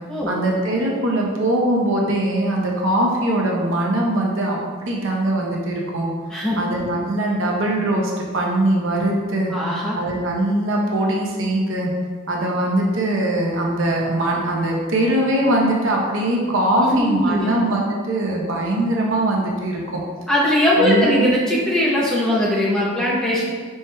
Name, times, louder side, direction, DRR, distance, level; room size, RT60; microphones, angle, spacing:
voice 1, 0.3-6.1 6.6-9.5 9.9-11.9 12.3-20.0 20.8-21.3, right 1 dB, 70° right, -2 dB, 0.8 m, -21 dB
voice 2, 6.3-6.6 9.5-10.0 16.8-17.5 20.3-23.4, left 1 dB, 5° left, -7 dB, 0.7 m, -20 dB
4.6 x 4.5 x 2.2 m, 1.5 s
head